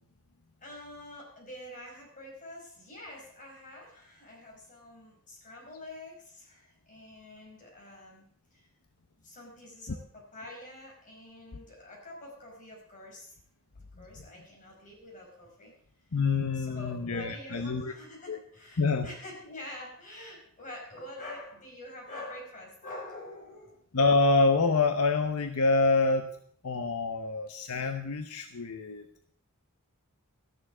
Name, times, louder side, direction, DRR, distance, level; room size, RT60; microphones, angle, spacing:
voice 1, 0.6-8.3 8.5-8.7 9.2-13.4 14.0-15.8 16.5-23.8, left 1 dB, 35° left, -1 dB, 4.9 m, -46 dB
voice 2, 16.1-17.9 18.3-18.4 18.8-19.1 23.9-26.4 26.6-29.1, left 3 dB, 80° left, 7 dB, 0.9 m, -26 dB
13.5 x 6.8 x 7.3 m, 0.62 s
head